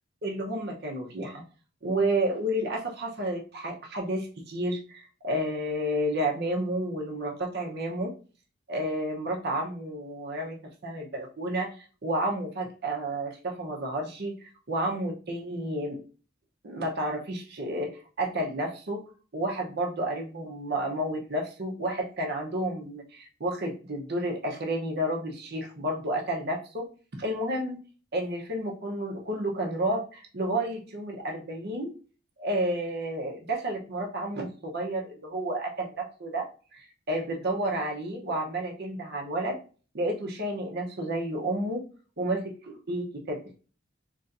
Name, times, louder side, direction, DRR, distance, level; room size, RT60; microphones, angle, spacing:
voice 1, 0.2-1.4 1.8-8.1 8.7-16.0 16.6-19.0 19.3-26.9 27.2-27.8 28.1-31.9 32.4-39.6 39.9-41.9 42.2-43.4, right 1 dB, 55° right, 1 dB, 0.8 m, -31 dB
4.1 x 3.1 x 2.5 m, 0.36 s
head